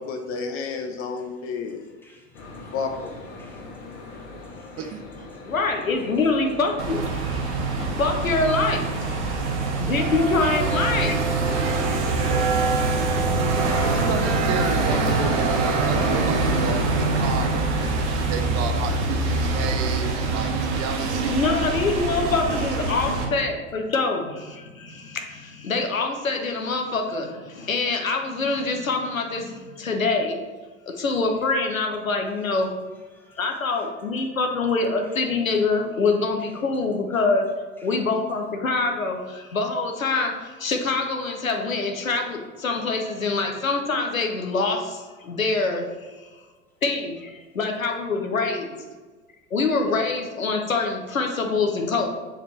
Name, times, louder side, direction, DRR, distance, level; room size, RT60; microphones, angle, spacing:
voice 1, 0.0-1.9 2.7-3.2, left 5 dB, 35° left, 0.6 m, -30 dB
voice 2, 2.0-2.8 3.4-4.2 4.8-5.0 7.2-7.3 33.1-33.4 33.7-33.9 37.8-38.0, left 1 dB, 5° left, 1.2 m, -57 dB
sound 1, 2.3-11.5, left 3 dB, 65° left, 1.6 m, -42 dB
voice 3, 5.4-11.2 12.1-12.4 18.1-18.2 21.3-30.4 30.9-32.7 33.4-37.4 37.8-46.2 46.8-48.8 49.5-52.1, left 3 dB, 90° left, 0.9 m, -25 dB
sound 2, 6.8-23.3, right 3 dB, 60° right, 1.2 m, -24 dB
voice 4, 13.8-21.4 21.7-21.8, right 6 dB, 40° right, 0.7 m, -32 dB
6.7 x 4.5 x 3.1 m
figure-of-eight pair, 80°, 39 cm